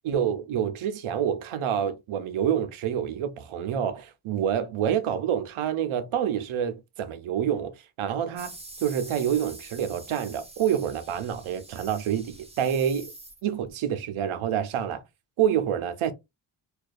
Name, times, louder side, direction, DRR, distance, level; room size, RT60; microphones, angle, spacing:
voice 1, 0.0-8.5 8.8-13.1 13.4-15.0 15.4-16.1, right 9 dB, 80° right, 0.6 m, -27 dB
sound 1, 8.4-13.7, right 2 dB, 15° right, 0.6 m, -46 dB
2.3 x 2.2 x 2.4 m
wide cardioid pair, 125°, 49 cm